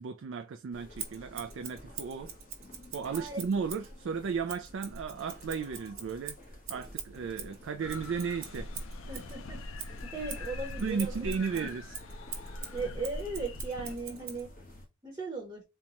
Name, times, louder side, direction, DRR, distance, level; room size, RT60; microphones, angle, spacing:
voice 1, 0.0-2.3 2.9-6.4 6.7-8.7 10.8-12.0, right 5 dB, 60° right, 0.3 m, -34 dB
sound 1, 0.7-14.9, left 1 dB, 40° left, 1.0 m, -51 dB
Scissors, 1.0-3.9 4.5-9.3 9.8-14.4, right 7 dB, 80° right, 0.9 m, -44 dB
sound 2, 7.8-14.0, left 1 dB, 70° left, 0.5 m, -42 dB
voice 2, 9.1-9.6 10.0-11.7 12.7-14.5 15.0-15.6, right 3 dB, 20° right, 0.9 m, -38 dB
4.0 x 2.2 x 2.9 m
head